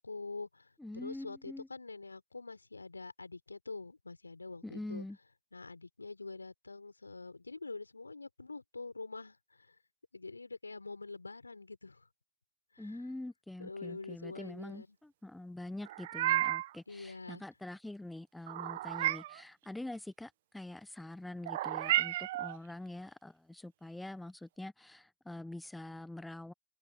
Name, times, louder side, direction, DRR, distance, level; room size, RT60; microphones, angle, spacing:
voice 1, 0.0-5.0 5.5-9.7 10.1-12.1 12.7-13.0 13.6-15.0 16.9-17.4, left 3 dB, 85° left, 4.8 m, -45 dB
voice 2, 0.8-1.7 4.6-5.2 12.8-26.5, left 1 dB, 5° left, 1.2 m, -45 dB
Meow, 15.8-16.8 18.5-19.4 21.5-22.6, right 15 dB, 50° right, 1.3 m, -32 dB
figure-of-eight pair, 110°, 0 cm